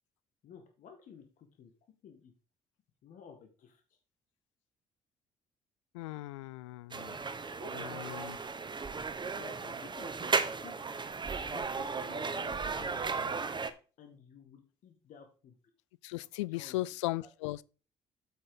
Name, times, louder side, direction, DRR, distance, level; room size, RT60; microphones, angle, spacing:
voice 1, 0.4-1.7 2.0-2.3 3.0-3.8 7.6-8.6 9.3-10.9 11.4-13.4 14.0-15.5 16.5-16.8 17.2-17.3, left 6 dB, 60° left, 1.9 m, -53 dB
voice 2, 5.9-7.2 8.0-8.4 16.0-17.6, left 18 dB, 80° left, 0.4 m, -37 dB
sound 1, 6.9-13.7, right 4 dB, 30° right, 1.4 m, -35 dB
8.1 x 7.9 x 3.9 m
hypercardioid pair, 50°, 15 cm